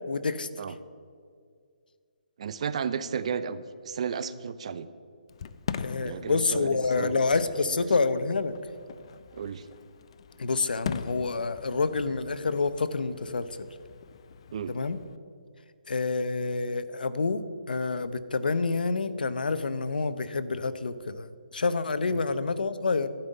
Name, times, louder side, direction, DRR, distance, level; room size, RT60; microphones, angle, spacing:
voice 1, 0.1-0.5 5.8-8.5 10.4-13.4 14.7-15.0 15.9-23.1, left 4 dB, 85° left, 13 dB, 0.7 m, -28 dB
voice 2, 2.4-4.9 6.0-7.2 7.7-7.8 9.3-9.7 14.5-14.7 22.1-22.2, right 7 dB, 45° right, 14 dB, 0.6 m, -33 dB
Fireworks, 5.3-15.2, left 7 dB, 40° left, 0.4 m, -41 dB
11.5 x 5.5 x 8.9 m, 2.2 s
hypercardioid pair, 165°, 5 cm